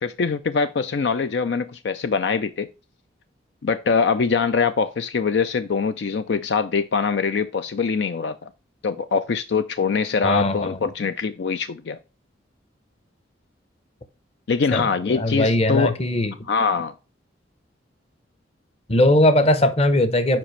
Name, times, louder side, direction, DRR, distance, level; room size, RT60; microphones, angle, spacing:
voice 1, 0.0-2.7 3.6-8.5 8.8-12.0 14.5-16.0 16.5-16.9, left 5 dB, 60° left, 0.4 m, -23 dB
voice 2, 10.2-10.8 14.7-16.3 18.9-20.4, left 1 dB, 30° left, 0.8 m, -19 dB
7.6 x 5.0 x 3.2 m
head